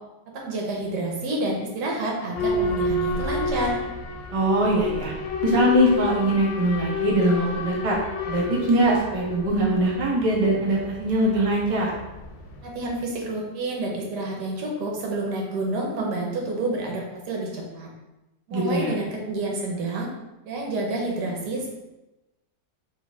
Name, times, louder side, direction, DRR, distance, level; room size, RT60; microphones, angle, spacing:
voice 1, 0.3-3.8 12.6-17.9 18.5-20.1 20.4-21.7, right 2 dB, 75° right, -1 dB, 1.4 m, -29 dB
Boat Water vehicle / Alarm, 2.3-13.0, left 3 dB, 75° left, 1.2 m, -30 dB
voice 2, 4.3-5.1 5.4-8.0 8.3-11.9 18.5-18.9, right 1 dB, 25° right, -4 dB, 0.8 m, -22 dB
4.5 x 3.2 x 3.5 m, 1.0 s
omnidirectional pair, 1.9 m